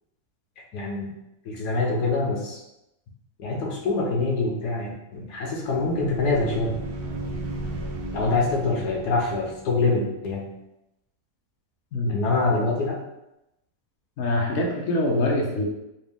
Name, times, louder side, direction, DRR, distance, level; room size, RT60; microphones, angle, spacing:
voice 1, 0.6-1.1 1.4-2.6 3.4-6.7 8.1-10.5 12.1-13.0, left 3 dB, 75° left, -1 dB, 1.3 m, -25 dB
sound 1, 5.7-10.4, right 2 dB, 60° right, 0.7 m, -35 dB
voice 2, 11.9-12.2 14.2-15.7, left 1 dB, 60° left, -1 dB, 1.0 m, -24 dB
4.1 x 2.4 x 3.4 m, 0.90 s
omnidirectional pair, 1.7 m